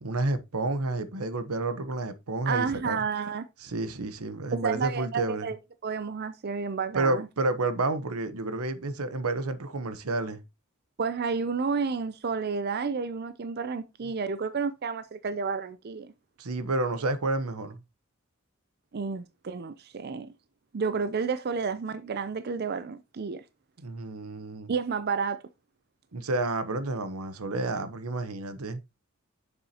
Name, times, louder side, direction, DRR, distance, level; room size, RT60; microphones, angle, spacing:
voice 1, 0.0-3.0 3.6-5.5 6.9-10.4 16.4-17.8 23.8-24.7 26.1-28.8, right 2 dB, 90° right, 0.9 m, -30 dB
voice 2, 2.5-3.5 4.5-5.6 5.8-7.3 11.0-16.1 18.9-20.3 20.7-23.4 24.7-25.4, right 5 dB, 45° right, 0.5 m, -31 dB
7.2 x 7.1 x 2.8 m
head